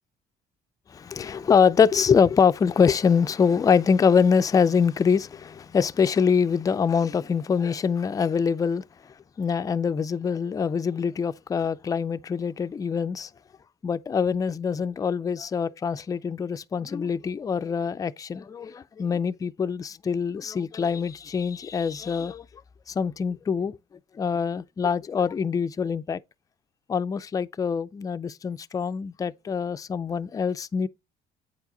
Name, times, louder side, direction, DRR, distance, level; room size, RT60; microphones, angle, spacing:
voice 1, 0.9-8.8 9.4-13.3 13.8-22.5 22.9-23.8 24.1-26.2 26.9-30.9, left 6 dB, 20° left, 0.3 m, -24 dB
8.6 x 4.7 x 3.8 m
cardioid pair, 110°, 17 cm